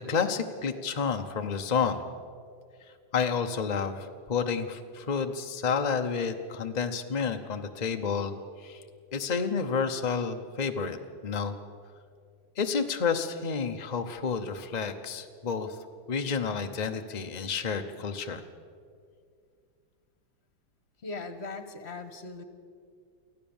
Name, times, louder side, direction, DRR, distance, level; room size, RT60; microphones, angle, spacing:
voice 1, 0.0-2.0 3.1-8.8 9.1-11.0 11.2-11.5 12.6-15.8 16.1-18.4, left 5 dB, 60° left, 6 dB, 0.4 m, -30 dB
voice 2, 21.0-22.4, left 3 dB, 35° left, 9 dB, 1.4 m, -39 dB
24.5 x 15.5 x 7.2 m, 2.2 s
omnidirectional pair, 2.2 m